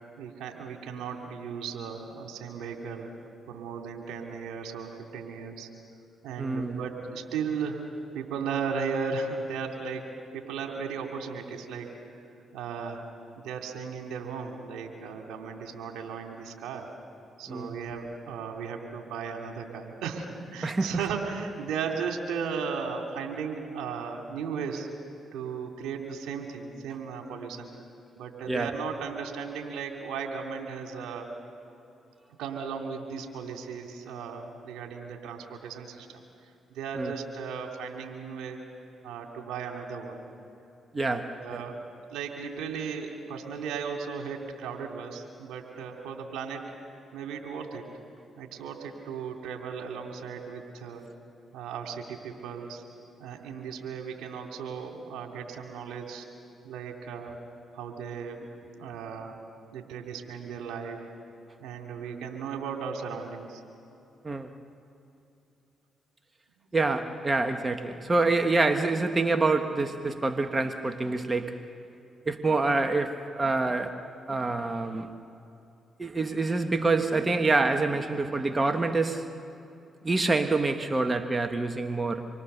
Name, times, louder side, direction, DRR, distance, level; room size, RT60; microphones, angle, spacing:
voice 1, 0.2-3.1 3.5-5.7 6.2-12.0 12.5-13.0 13.4-16.9 17.4-24.9 25.3-27.7 28.2-31.3 32.4-36.1 36.7-38.6 39.0-40.2 40.9-41.8 42.1-46.7 47.1-47.9 48.4-51.1 51.5-52.8 53.2-56.3 56.6-57.4 57.7-58.5 58.8-59.4 59.7-61.1 61.6-63.6 66.6-66.7, right 6 dB, 80° right, 2 dB, 2.6 m, -36 dB
voice 2, 6.4-6.8 17.5-17.7 20.6-21.0 28.5-28.7 37.0-37.1 40.9-41.6 64.2-64.5 66.7-71.6 72.2-74.0 74.3-75.1 76.0-79.3 80.0-82.3, right 3 dB, 30° right, 7 dB, 1.4 m, -26 dB
26.0 x 23.0 x 6.8 m, 2.8 s
hypercardioid pair, 50°, 0 cm